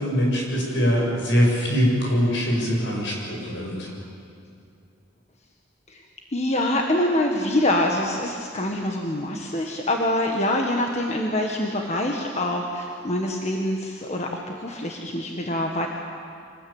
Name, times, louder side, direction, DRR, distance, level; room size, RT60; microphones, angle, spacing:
voice 1, 0.0-3.9, equal, 65° left, -1 dB, 7.3 m, -22 dB
voice 2, 6.3-15.9, left 1 dB, 35° left, 1 dB, 1.6 m, -25 dB
25.5 x 19.5 x 8.9 m, 2.5 s
head